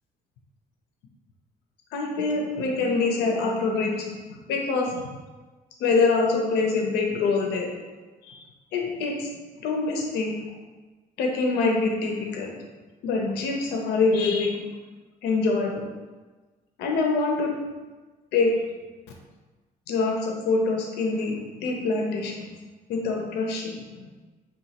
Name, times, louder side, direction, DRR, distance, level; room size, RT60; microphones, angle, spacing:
voice 1, 1.9-4.9 5.8-7.7 8.2-8.4 8.7-9.3 9.6-10.3 11.2-12.5 13.0-14.6 15.2-15.9 16.8-17.5 18.3-18.5 19.9-22.5 22.9-23.8, left 3 dB, 80° left, 1 dB, 0.5 m, -25 dB
3.0 x 2.2 x 4.0 m, 1.3 s
cardioid pair, 110°, 17 cm